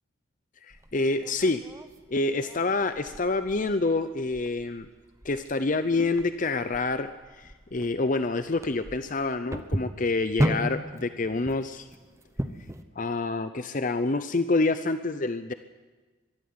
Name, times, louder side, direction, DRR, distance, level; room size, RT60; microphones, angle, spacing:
voice 1, 0.6-1.6 2.1-4.9 5.2-11.9 13.0-15.5, left 3 dB, 40° left, 11 dB, 0.7 m, -27 dB
sound 1, 0.7-12.8, equal, 15° right, 0.9 m, -35 dB
23.0 x 12.5 x 9.7 m, 1.3 s
head